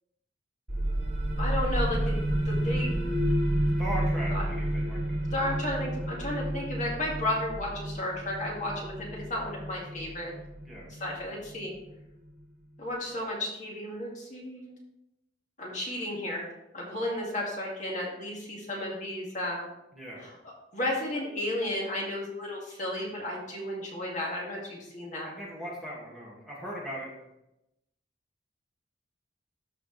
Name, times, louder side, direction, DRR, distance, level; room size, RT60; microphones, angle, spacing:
sound 1, 0.7-12.1, right 1 dB, 60° right, 2.9 m, -30 dB
voice 1, 1.4-2.2 2.5-2.9 4.3-4.4 5.3-10.3 10.9-11.8 12.8-14.8 15.6-16.4 16.7-19.7 20.2-25.3, left 1 dB, 40° left, -3 dB, 2.2 m, -33 dB
voice 2, 3.8-5.2 10.7-10.9 19.9-20.3 25.3-27.1, right 1 dB, ahead, -6 dB, 2.1 m, -38 dB
13.5 x 5.0 x 3.3 m, 0.87 s
head